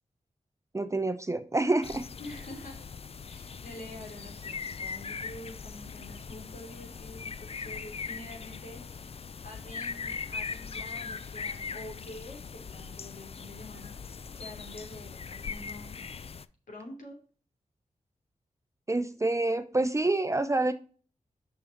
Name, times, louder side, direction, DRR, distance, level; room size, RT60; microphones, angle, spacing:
voice 1, 0.7-2.0 18.9-20.7, right 2 dB, 20° right, 11 dB, 0.6 m, -27 dB
sound 1, 1.8-16.5, left 5 dB, 45° left, 0.5 m, -40 dB
voice 2, 2.2-2.8 3.3-15.9 16.7-17.2, left 1 dB, 80° left, 0 dB, 3.0 m, -47 dB
6.1 x 5.7 x 4.6 m, 0.40 s
cardioid pair, 50°, 13 cm